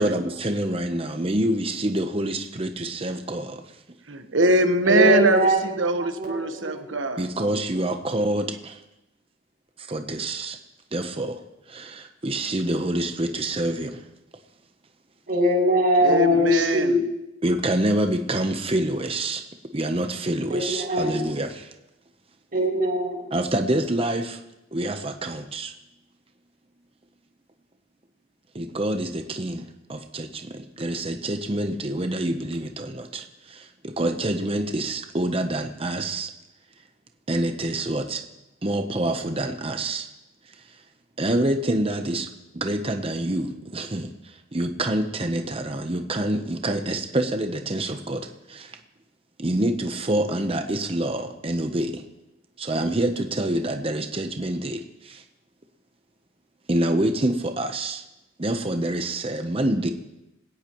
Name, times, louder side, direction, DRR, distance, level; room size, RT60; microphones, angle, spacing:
voice 1, 0.0-3.6 7.2-8.8 9.8-10.6 10.9-11.4 11.7-14.0 17.4-19.4 19.7-21.7 23.3-24.4 24.7-25.7 28.5-36.3 37.3-38.2 38.6-40.1 41.2-48.8 49.4-52.0 52.6-55.2 56.7-58.0 58.4-59.9, right 1 dB, 30° right, 6 dB, 0.9 m, -27 dB
voice 2, 4.1-7.3 16.0-17.0, right 2 dB, 85° right, 7 dB, 1.3 m, -22 dB
voice 3, 4.8-5.6 6.2-6.8 15.3-17.0 20.5-21.2 22.5-23.3, equal, 50° right, -4 dB, 6.5 m, -21 dB
20.0 x 17.0 x 3.1 m, 0.94 s
head